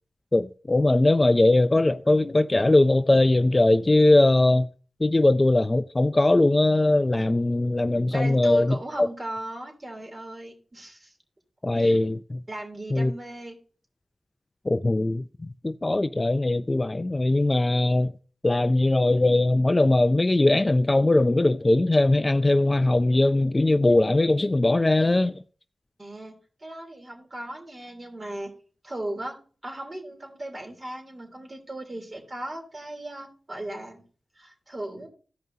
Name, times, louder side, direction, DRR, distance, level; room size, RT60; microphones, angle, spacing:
voice 1, 0.3-4.7 5.0-9.1 11.6-12.4 12.9-13.1 14.7-15.2 15.6-18.1 18.4-25.3, left 2 dB, 25° left, 0.4 m, -20 dB
voice 2, 8.1-11.1 11.7-12.0 12.5-13.6 26.0-28.5 28.8-29.4 29.6-34.0 34.4-35.1, right 1 dB, 35° right, 3.3 m, -37 dB
15.0 x 5.4 x 2.8 m
cardioid pair, 60°, 0 cm